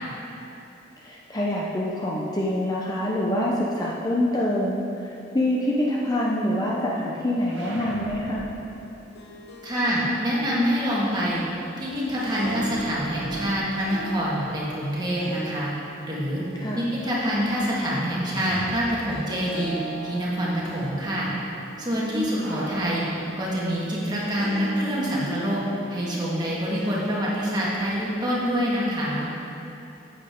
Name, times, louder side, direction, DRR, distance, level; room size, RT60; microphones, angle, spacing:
voice 1, 1.0-8.4 16.6-16.8, left 1 dB, 20° left, -4 dB, 0.6 m, -25 dB
sound 1, 7.4-9.4 12.1-15.1 18.3-19.7 19.9-20.0 22.3-24.1, right 1 dB, 75° right, 1.2 m, -41 dB
Harp, 8.9-28.8, right 2 dB, 60° left, 0.8 m, -41 dB
voice 2, 9.6-11.4 11.8-15.7 16.1-16.4 16.7-19.8 20.0-21.3 21.8-23.1 23.4-25.6 25.9-29.3, equal, 20° right, -6 dB, 1.7 m, -26 dB
10.0 x 7.9 x 3.7 m, 2.8 s
head